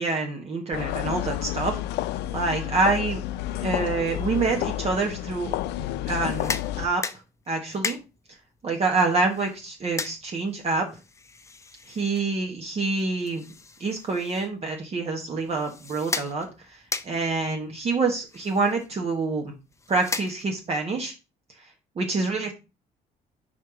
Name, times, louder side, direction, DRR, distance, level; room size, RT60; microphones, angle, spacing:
voice 1, 0.0-1.8 2.3-3.2 3.6-7.0 7.5-8.0 8.6-10.9 11.9-13.4 13.8-19.5 19.9-21.1 22.0-22.5, right 3 dB, 40° right, 1 dB, 1.2 m, -27 dB
sound 1, 0.7-6.9, left 14 dB, 85° left, 0.4 m, -30 dB
sound 2, 6.1-20.8, left 4 dB, 15° left, 0.5 m, -38 dB
4.7 x 4.3 x 4.8 m, 0.28 s
cardioid pair, 110°, 17 cm